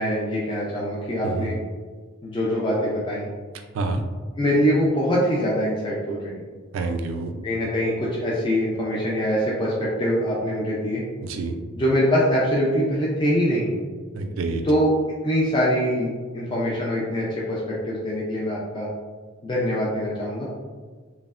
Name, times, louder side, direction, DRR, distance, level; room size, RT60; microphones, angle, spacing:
voice 1, 0.0-1.6 2.2-3.3 4.4-6.4 7.4-11.0 11.7-13.7 14.6-14.9 15.2-18.9 19.4-20.5, equal, 25° left, -6 dB, 0.4 m, -23 dB
voice 2, 6.7-7.3 11.2-11.6 14.1-14.6, right 3 dB, 90° right, 5 dB, 0.3 m, -27 dB
3.1 x 2.0 x 2.3 m, 1.5 s
head